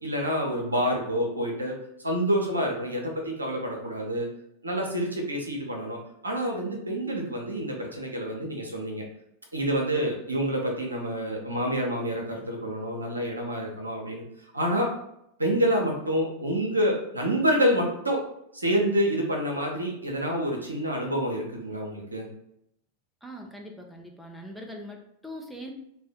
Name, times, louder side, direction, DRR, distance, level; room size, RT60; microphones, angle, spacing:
voice 1, 0.0-1.8 2.0-4.3 4.6-6.0 6.2-9.0 9.5-14.2 14.5-14.9 15.4-18.2 18.5-22.3, equal, 80° right, 0 dB, 0.6 m, -27 dB
voice 2, 23.2-25.7, equal, ahead, 0 dB, 0.4 m, -41 dB
2.5 x 2.1 x 3.4 m, 0.77 s
figure-of-eight pair, 90°, 0 cm